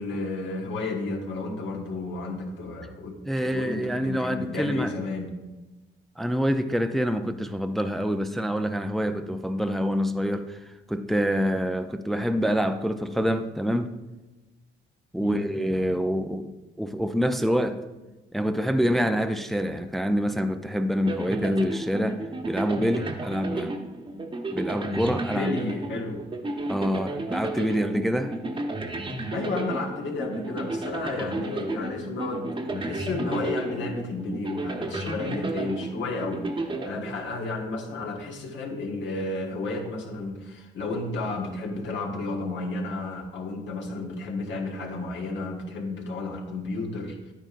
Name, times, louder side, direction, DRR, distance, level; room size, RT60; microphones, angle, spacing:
voice 1, 0.0-3.2 3.4-5.3 15.2-15.5 25.3-26.3 29.3-47.3, left 2 dB, 70° left, 1.5 m, -32 dB
voice 2, 3.3-4.9 6.2-14.0 15.1-17.8 18.3-23.8 24.5-25.5 26.7-28.4, equal, ahead, 0.4 m, -26 dB
sound 1, 21.1-37.6, right 2 dB, 25° right, 1.0 m, -33 dB
10.0 x 9.0 x 2.5 m
cardioid pair, 90°, 20 cm